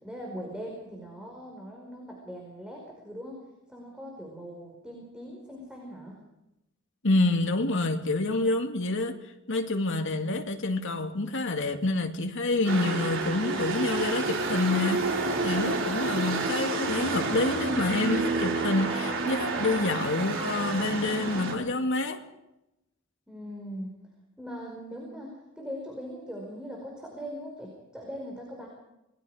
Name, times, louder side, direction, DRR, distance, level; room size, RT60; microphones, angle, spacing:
voice 1, 0.0-3.4 3.7-6.2 10.1-10.4 23.3-23.9 24.4-28.7, equal, 5° right, 5.1 m, -41 dB
voice 2, 7.0-9.2 9.5-22.2, left 2 dB, 60° left, 2.3 m, -27 dB
sound 1, 12.7-21.5, right 3 dB, 65° right, 4.2 m, -29 dB
27.5 x 20.0 x 5.0 m
head